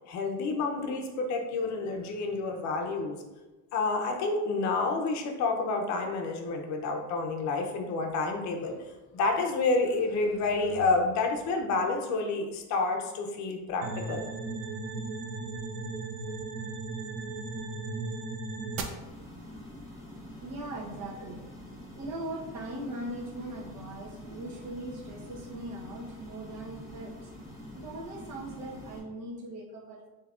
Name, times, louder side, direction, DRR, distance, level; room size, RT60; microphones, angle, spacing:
voice 1, 0.1-3.2 3.7-8.7 9.1-14.3, left 3 dB, 50° left, 3 dB, 0.6 m, -29 dB
sound 1, 13.8-18.8, right 3 dB, 40° right, 0.4 m, -36 dB
sound 2, 19.0-29.0, left 1 dB, 10° right, 0.8 m, -46 dB
voice 2, 20.4-30.1, right 1 dB, 55° right, -1 dB, 1.0 m, -40 dB
6.9 x 2.8 x 2.4 m, 1.1 s
cardioid pair, 180°, 37 cm